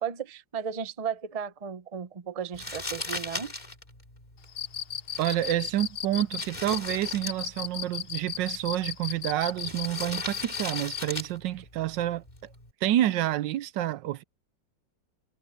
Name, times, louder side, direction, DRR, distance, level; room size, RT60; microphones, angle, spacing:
voice 1, 0.0-3.5, right 7 dB, 30° right, 0.6 m, -35 dB
Crumpling crinkling, 2.5-12.7, left 2 dB, 25° left, 2.6 m, -40 dB
Cricket, 4.5-11.1, left 9 dB, 80° left, 0.5 m, -35 dB
voice 2, 5.2-12.2 12.8-14.2, right 13 dB, 80° right, 1.3 m, -28 dB
omnidirectional pair, 2.0 m